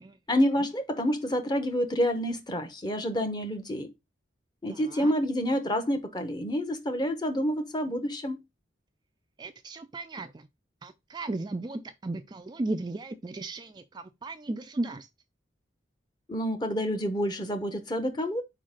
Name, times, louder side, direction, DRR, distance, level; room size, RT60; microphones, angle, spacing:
voice 1, 0.3-3.9 4.6-8.4 16.3-18.4, equal, 25° left, 0.9 m, -28 dB
voice 2, 4.7-5.1 9.4-10.5 10.8-15.1, right 2 dB, 25° right, 0.3 m, -35 dB
4.8 x 3.9 x 5.0 m
head